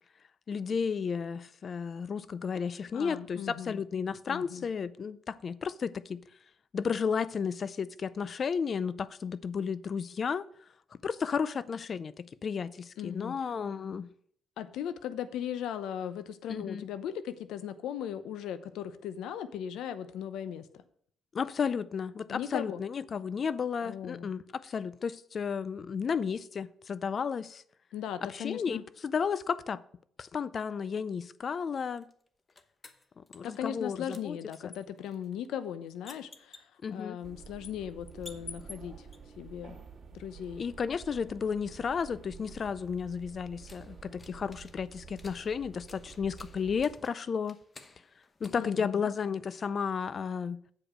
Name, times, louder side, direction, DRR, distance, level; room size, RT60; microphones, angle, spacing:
voice 1, 0.5-6.2 6.7-10.5 11.0-14.1 16.5-16.9 21.3-27.6 28.2-29.8 30.2-32.1 33.3-34.4 36.8-37.2 40.6-47.6 48.4-50.6, left 6 dB, 45° left, 0.4 m, -33 dB
voice 2, 2.9-3.8 4.3-4.7 13.0-13.5 14.6-20.7 22.3-22.8 23.8-24.3 27.9-28.8 33.4-39.1 39.4-39.8 40.1-40.6 48.5-49.1, left 9 dB, 85° left, 0.7 m, -38 dB
sound 1, 32.0-33.9 34.1-39.2 42.0-49.5, left 3 dB, 30° left, 0.9 m, -54 dB
sound 2, 37.2-46.9, right 6 dB, 45° right, 2.3 m, -50 dB
8.4 x 5.1 x 6.0 m
cardioid pair, 90°, 0 cm